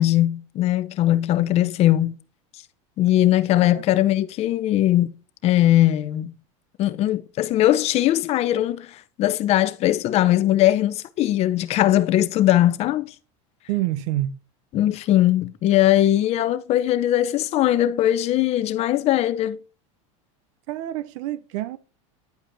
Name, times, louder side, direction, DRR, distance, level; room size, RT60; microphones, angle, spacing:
voice 1, 0.0-2.2 3.0-5.1 5.4-6.3 6.8-13.1 14.7-19.6, left 13 dB, 40° left, 0.7 m, -20 dB
voice 2, 13.7-14.4 20.7-21.8, right 15 dB, 70° right, 0.6 m, -27 dB
10.5 x 4.9 x 2.7 m
supercardioid pair, 135°, 17 cm